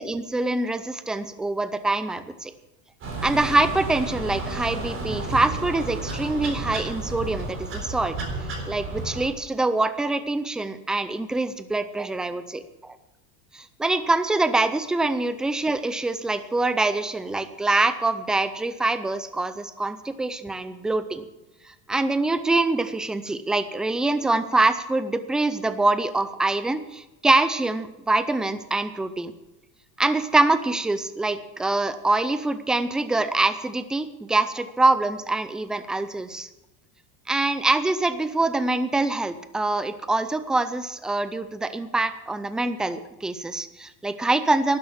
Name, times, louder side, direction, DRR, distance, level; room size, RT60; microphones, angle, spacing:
voice 1, 0.0-2.5 3.2-8.2 8.7-12.6 13.5-21.3 21.9-29.3 30.0-36.5 37.3-44.8, right 2 dB, ahead, 12 dB, 0.4 m, -24 dB
sound 1, 3.0-9.3, right 2 dB, 30° right, 3.9 m, -32 dB
12.0 x 10.5 x 7.3 m, 1.0 s
supercardioid pair, 150°, 41 cm